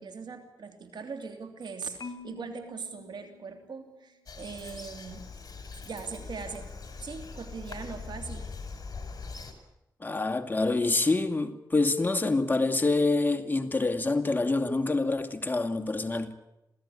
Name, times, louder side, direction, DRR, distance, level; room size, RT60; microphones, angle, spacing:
voice 1, 0.0-5.3 5.9-6.7 7.0-8.5, right 5 dB, 80° right, 3.0 m, -40 dB
Marimba xylophone, 2.0-4.2, left 5 dB, 70° left, 1.1 m, -47 dB
Bird vocalization bird call bird song, 4.3-9.5, left 4 dB, 55° left, 5.2 m, -42 dB
voice 2, 10.0-16.3, left 3 dB, 25° left, 2.4 m, -26 dB
27.5 x 17.0 x 9.9 m
cardioid pair, 70°, 8 cm